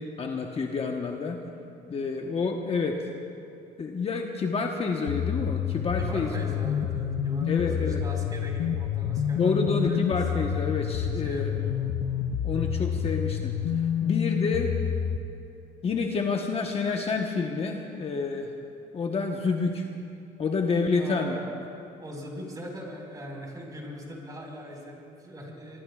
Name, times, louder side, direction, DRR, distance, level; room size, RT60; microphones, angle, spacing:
voice 1, 0.2-1.4 1.9-3.0 3.8-6.3 7.5-8.0 9.4-11.6 12.4-14.7 15.8-18.5 18.9-19.9 20.4-21.4, left 4 dB, 35° left, 2 dB, 1.1 m, -28 dB
sound 1, 5.1-15.2, left 9 dB, 80° left, 0.7 m, -28 dB
voice 2, 6.0-10.2 11.2-11.7 20.9-21.5 22.0-25.8, equal, 20° right, -1 dB, 4.9 m, -40 dB
23.5 x 23.5 x 2.4 m, 2.6 s
cardioid pair, 110°, 17 cm